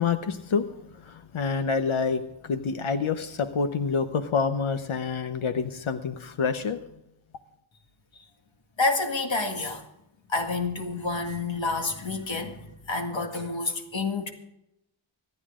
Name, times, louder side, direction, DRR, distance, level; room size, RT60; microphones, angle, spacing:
voice 1, 0.0-6.8, left 5 dB, 85° left, 1.0 m, -27 dB
voice 2, 8.8-9.8 10.3-14.3, left 3 dB, 70° left, 2.1 m, -29 dB
26.0 x 9.8 x 3.8 m
wide cardioid pair, 95°, 48 cm